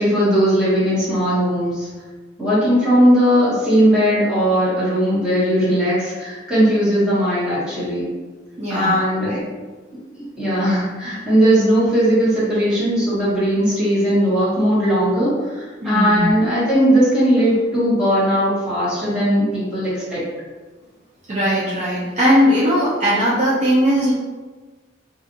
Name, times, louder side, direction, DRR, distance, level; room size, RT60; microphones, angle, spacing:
voice 1, 0.0-1.9 2.4-8.1 8.7-9.4 10.1-20.2, equal, 5° right, -11 dB, 1.1 m, -18 dB
voice 2, 8.6-9.4 15.8-16.3 21.3-24.1, equal, 35° right, -9 dB, 0.6 m, -19 dB
2.7 x 2.4 x 2.7 m, 1.3 s
head